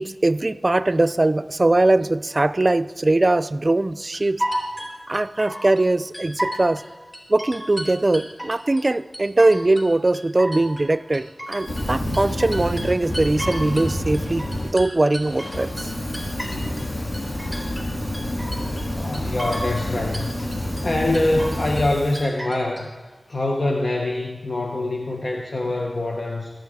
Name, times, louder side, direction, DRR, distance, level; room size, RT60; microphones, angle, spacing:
voice 1, 0.0-4.4 5.1-6.8 7.3-14.5 14.7-15.9, right 2 dB, 45° right, 0.4 m, -21 dB
sound 1, 4.1-5.8 6.1-6.8 7.1-8.9 9.1-9.9 10.1-13.9 14.1-16.9 17.1-17.9 18.1-18.9 19.1-19.9 20.1-20.8 21.1-21.9 22.1-22.8, equal, 10° left, 3.6 m, -33 dB
Fire, 11.6-14.7 15.2-22.2, left 1 dB, 80° left, 2.5 m, -28 dB
voice 2, 18.9-20.3 20.8-22.9 23.3-26.5, left 2 dB, 65° left, 1.1 m, -24 dB
24.0 x 9.3 x 3.7 m
cardioid pair, 40°, 0 cm